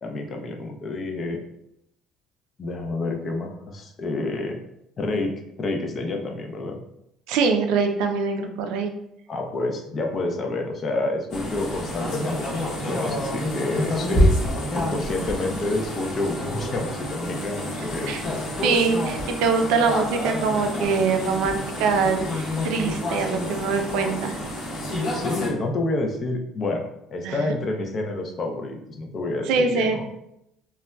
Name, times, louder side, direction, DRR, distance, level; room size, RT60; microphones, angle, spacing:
voice 1, 0.0-1.4 2.6-4.6 5.0-5.3 5.6-6.8 9.3-14.4 14.7-18.4 25.1-30.0, left 2 dB, 30° left, 2 dB, 0.4 m, -29 dB
voice 2, 7.3-8.9 18.1-18.2 18.6-24.4 27.2-27.4 29.5-30.0, right 5 dB, 75° right, 5 dB, 0.4 m, -23 dB
sound 1, 11.3-25.5, left 1 dB, 45° left, 0.8 m, -28 dB
3.8 x 2.2 x 2.2 m, 0.81 s
cardioid pair, 170°, 0 cm